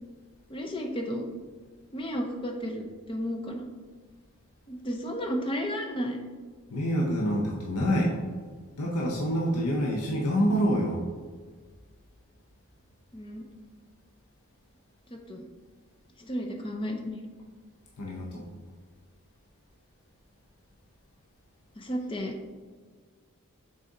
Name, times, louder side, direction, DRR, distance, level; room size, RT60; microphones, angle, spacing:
voice 1, 0.5-1.3 1.9-3.7 4.7-6.2 13.1-13.4 15.3-15.5 16.2-17.2 21.8-22.3, equal, 25° left, 2 dB, 0.6 m, -33 dB
voice 2, 6.7-8.2 8.8-11.0 18.0-18.4, equal, 85° left, -2 dB, 0.8 m, -26 dB
6.2 x 4.1 x 3.9 m, 1.5 s
head